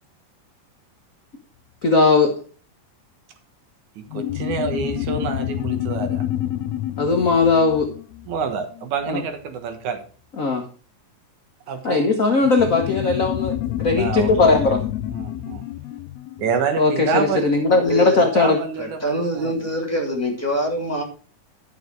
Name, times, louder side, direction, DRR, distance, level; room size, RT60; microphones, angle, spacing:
voice 1, 1.8-2.3 7.0-7.9 9.1-9.2 10.4-10.7 11.8-14.8 16.8-18.6, left 3 dB, 60° left, 3 dB, 0.8 m, -18 dB
voice 2, 4.0-6.3 8.3-10.0 11.7-12.2 13.9-14.5 15.1-15.6 16.4-17.4 18.2-19.7, right 6 dB, 85° right, 6 dB, 2.9 m, -27 dB
sound 1, 4.1-9.1 12.4-17.3, left 13 dB, 75° left, 1.7 m, -28 dB
voice 3, 17.7-18.2 18.8-21.0, right 1 dB, 5° left, 0 dB, 2.7 m, -25 dB
11.5 x 6.5 x 4.7 m, 0.39 s
omnidirectional pair, 3.3 m